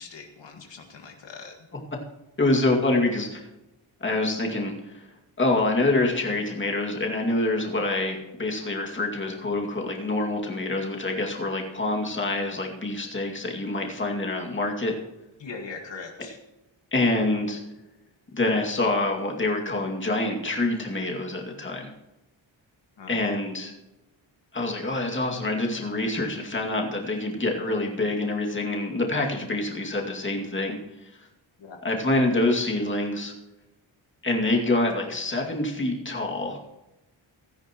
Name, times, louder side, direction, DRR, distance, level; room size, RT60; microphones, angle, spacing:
voice 1, 0.0-1.6 15.4-16.4 23.0-23.2 31.6-31.8, left 4 dB, 65° left, 2 dB, 1.9 m, -41 dB
voice 2, 2.4-3.5 4.0-5.0 5.4-14.9 16.9-17.6 18.3-21.9 23.1-23.7 24.5-30.8 31.8-33.3 34.2-36.6, left 2 dB, 25° left, 0 dB, 2.3 m, -26 dB
17.0 x 13.5 x 3.0 m, 0.96 s
wide cardioid pair, 120°, 48 cm